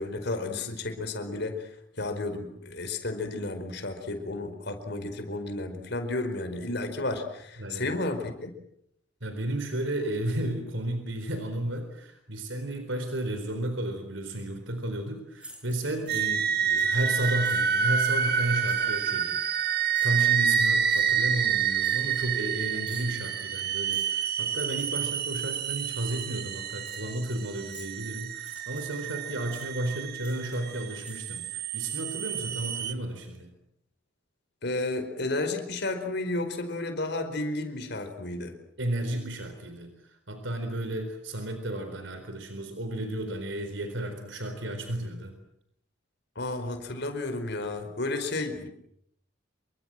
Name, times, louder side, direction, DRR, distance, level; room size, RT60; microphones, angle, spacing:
voice 1, 0.0-1.7 2.0-8.5 34.6-38.5 46.3-48.7, left 2 dB, 60° left, 7 dB, 4.7 m, -32 dB
voice 2, 7.6-8.0 9.2-33.5 38.8-45.3, right 1 dB, 75° right, 7 dB, 4.1 m, -33 dB
sound 1, 15.4-16.5 16.8-17.0 17.4-18.3 18.7-19.0 19.9-20.3 20.9-21.1 21.8-22.5 22.8-23.2 23.9-24.2 24.8-25.0 25.5-25.9 26.2-26.4 26.8-27.1 27.7-28.0 28.4-29.0 29.5-29.7 30.2-30.7 31.0-32.5, equal, 5° right, 7.9 m, -49 dB
sound 2, 16.1-32.9, right 7 dB, 55° right, 1.8 m, -28 dB
27.5 x 24.0 x 7.7 m, 0.74 s
head